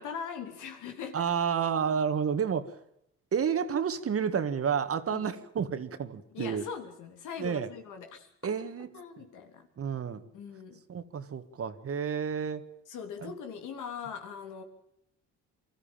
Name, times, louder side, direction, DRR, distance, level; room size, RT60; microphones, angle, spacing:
voice 1, 0.0-1.2 5.1-5.3 6.3-8.5 8.9-9.7 10.3-10.8 12.9-14.6, left 7 dB, 85° left, 6 dB, 3.3 m, -41 dB
voice 2, 1.1-2.7 3.3-6.6 7.4-7.7 8.4-8.9 9.8-10.3 10.9-12.6 13.2-13.3, right 7 dB, 50° right, 11 dB, 1.8 m, -30 dB
24.0 x 14.0 x 9.0 m, 0.78 s
cardioid pair, 90°, 30 cm